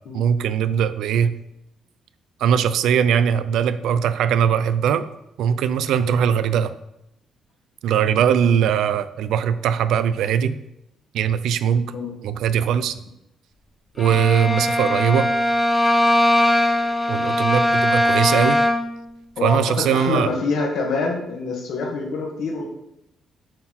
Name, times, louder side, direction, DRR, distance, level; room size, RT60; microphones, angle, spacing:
voice 1, 0.1-1.3 2.4-5.0 5.4-6.7 7.8-10.6 11.1-11.9 12.2-13.0 14.0-15.3 17.1-18.6 19.4-20.3, right 8 dB, 80° right, 13 dB, 0.4 m, -20 dB
Bowed string instrument, 14.0-19.0, left 1 dB, 15° left, 1.1 m, -20 dB
voice 2, 19.4-22.6, left 3 dB, 70° left, 0 dB, 1.7 m, -26 dB
7.5 x 4.3 x 4.3 m, 0.84 s
cardioid pair, 90°, 0 cm